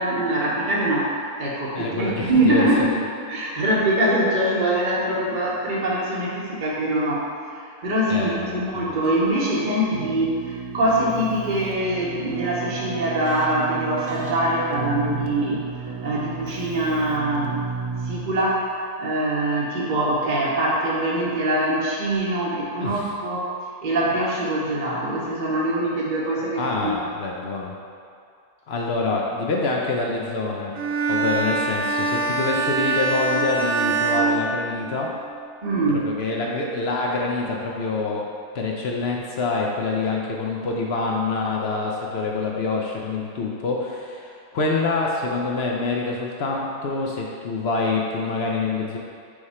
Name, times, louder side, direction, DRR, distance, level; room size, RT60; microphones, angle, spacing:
voice 1, 0.0-3.0 3.3-15.6 16.0-17.5 18.0-23.5 23.8-27.0 35.6-36.1, right 1 dB, 40° right, -6 dB, 0.8 m, -23 dB
voice 2, 1.7-2.7 8.1-9.0 22.8-23.1 26.6-27.7 28.7-30.7 31.1-35.1 36.0-38.2 38.5-49.0, left 3 dB, 65° left, -1 dB, 0.6 m, -26 dB
Keyboard (musical), 9.9-18.6, right 5 dB, 65° right, 0.9 m, -33 dB
Bowed string instrument, 30.7-35.2, right 3 dB, 85° right, 0.5 m, -24 dB
4.8 x 4.8 x 4.2 m, 2.3 s
omnidirectional pair, 1.6 m